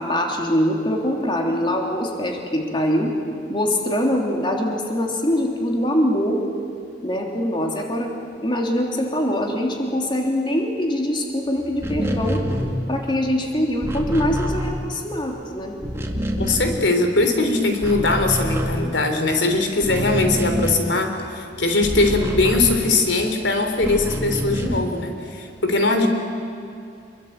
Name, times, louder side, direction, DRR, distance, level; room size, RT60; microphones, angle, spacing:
voice 1, 0.0-3.1 3.5-6.4 7.0-8.1 8.4-12.4 12.9-15.7, equal, 25° left, 1 dB, 3.3 m, -23 dB
sound 1, 11.7-15.4 15.7-17.4 17.7-23.3 23.8-25.0, equal, 15° right, 2.4 m, -27 dB
voice 2, 16.4-26.1, left 2 dB, 85° left, 6 dB, 3.3 m, -21 dB
27.5 x 23.0 x 9.1 m, 2.5 s
head